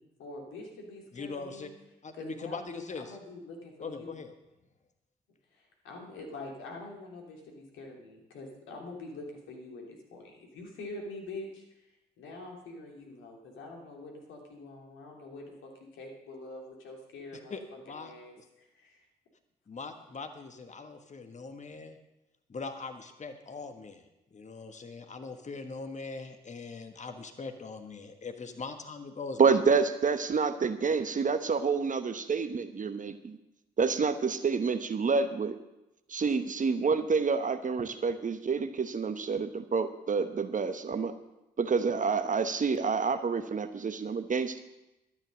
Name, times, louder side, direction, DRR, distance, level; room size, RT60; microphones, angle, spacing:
voice 1, 0.0-1.7 2.1-4.2 5.5-11.6 12.2-17.5 18.0-19.0, left 2 dB, 70° left, 0 dB, 3.0 m, -45 dB
voice 2, 1.1-1.7 2.0-3.2 3.8-4.4 17.5-17.6 17.9-18.4 19.7-22.0 22.5-29.6, left 4 dB, 35° left, 7 dB, 1.5 m, -41 dB
voice 3, 29.4-33.4 33.8-35.6 36.1-41.1 41.6-44.6, right 5 dB, 40° right, 10 dB, 1.1 m, -28 dB
12.0 x 9.7 x 6.3 m, 0.93 s
hypercardioid pair, 40°, 21 cm